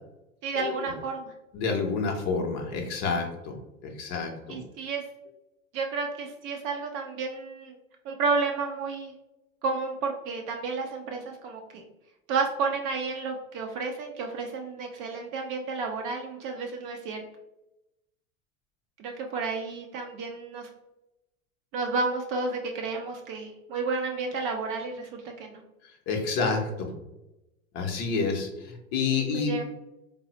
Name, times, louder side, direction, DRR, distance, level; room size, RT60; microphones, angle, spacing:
voice 1, 0.4-1.3 4.5-5.0 5.7-7.8 8.0-9.1 9.6-11.8 12.3-17.2 19.0-20.7 21.7-25.6 29.1-29.6, right 4 dB, 35° right, 2 dB, 0.4 m, -31 dB
voice 2, 1.5-3.6 4.0-4.6 26.1-26.9 27.7-29.5, left 4 dB, 40° left, 3 dB, 0.7 m, -28 dB
3.8 x 2.0 x 2.9 m, 0.94 s
figure-of-eight pair, 85°, 40 cm